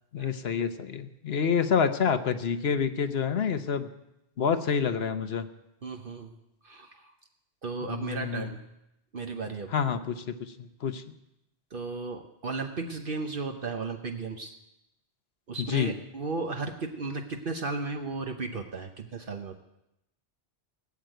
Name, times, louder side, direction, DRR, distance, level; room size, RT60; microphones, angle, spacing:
voice 1, 0.1-3.9 4.4-5.5 7.8-8.5 9.7-11.0 15.6-15.9, left 6 dB, 70° left, 10 dB, 1.2 m, -28 dB
voice 2, 5.8-6.3 6.6-7.1 7.6-8.6 9.1-9.7 11.7-14.5 15.5-19.6, right 3 dB, 55° right, 4 dB, 1.1 m, -35 dB
18.0 x 8.1 x 9.1 m, 0.88 s
omnidirectional pair, 1.1 m